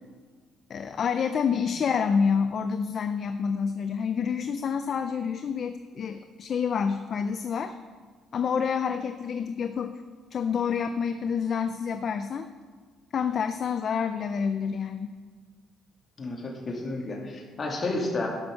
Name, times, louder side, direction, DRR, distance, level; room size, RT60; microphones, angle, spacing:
voice 1, 0.7-7.7 8.3-10.0 10.3-12.5 13.1-15.1, left 6 dB, 45° left, 9 dB, 0.5 m, -28 dB
voice 2, 16.2-18.3, left 2 dB, 30° left, -1 dB, 2.5 m, -31 dB
11.5 x 6.2 x 6.4 m, 1.5 s
cardioid pair, 120°, 0 cm